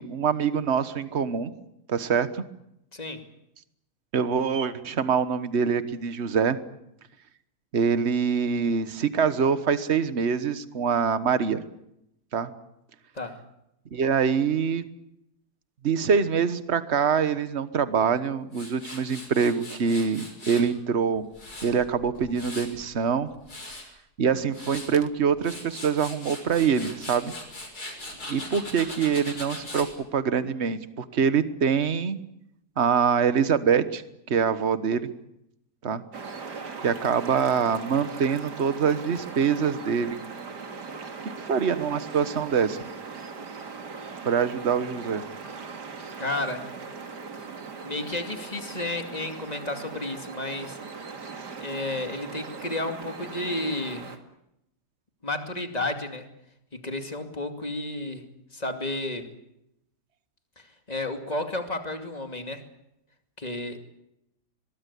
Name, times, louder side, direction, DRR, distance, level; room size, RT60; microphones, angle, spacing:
voice 1, 0.0-1.5 1.9-2.4 4.1-6.6 7.7-11.6 12.3-12.5 13.9-14.8 15.8-21.2 21.6-23.3 24.2-27.3 28.3-32.2 32.8-34.0 34.3-35.1 35.8-36.0 36.8-40.2 41.4-42.8 44.2-45.2, right 6 dB, 45° right, 13 dB, 1.4 m, -24 dB
voice 2, 2.9-3.2 13.1-13.4 46.2-46.6 47.8-50.8 51.6-54.1 55.2-56.3 56.7-58.2 58.5-59.3 60.6-62.6 63.4-63.8, left 2 dB, 25° left, 5 dB, 2.6 m, -32 dB
Tools, 18.5-20.7 21.1-22.8 23.2-23.8 24.3-24.9 25.3-29.9, left 1 dB, 65° left, 6.8 m, -40 dB
sound 1, 36.1-54.2, right 5 dB, 85° right, 2.8 m, -39 dB
22.5 x 22.5 x 8.4 m, 0.82 s
omnidirectional pair, 1.7 m